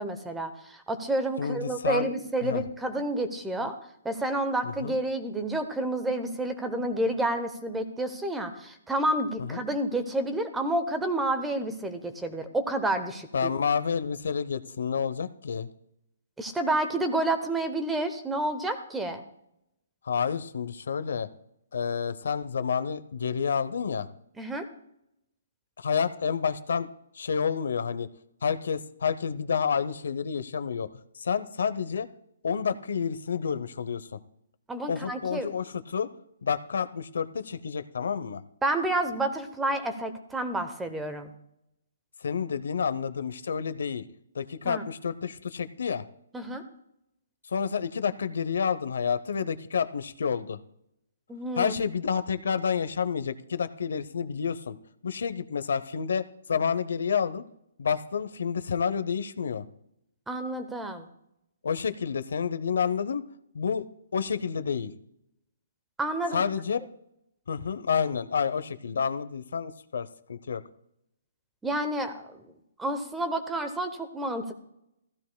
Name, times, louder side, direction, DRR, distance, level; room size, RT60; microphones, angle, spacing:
voice 1, 0.0-3.7 4.0-13.5 16.4-19.2 24.4-24.6 34.7-35.5 38.6-41.3 44.6-44.8 46.3-46.6 51.3-51.7 60.3-61.1 66.0-66.4 71.6-72.3 72.8-74.5, right 1 dB, 5° right, 8 dB, 0.8 m, -29 dB
voice 2, 1.4-2.1 2.4-2.6 4.6-4.9 9.4-9.6 13.3-15.7 20.0-21.3 21.7-24.1 25.8-26.9 27.1-28.1 28.4-30.9 31.1-32.1 32.4-34.1 34.9-36.1 36.4-38.4 42.2-44.0 44.3-46.1 47.5-50.6 51.6-54.8 55.0-57.4 57.8-59.7 61.6-63.2 63.5-63.8 64.1-64.9 66.3-66.8 67.5-70.6, left 6 dB, 70° left, 12 dB, 0.7 m, -29 dB
15.0 x 14.0 x 2.2 m, 0.78 s
hypercardioid pair, 165°, 0 cm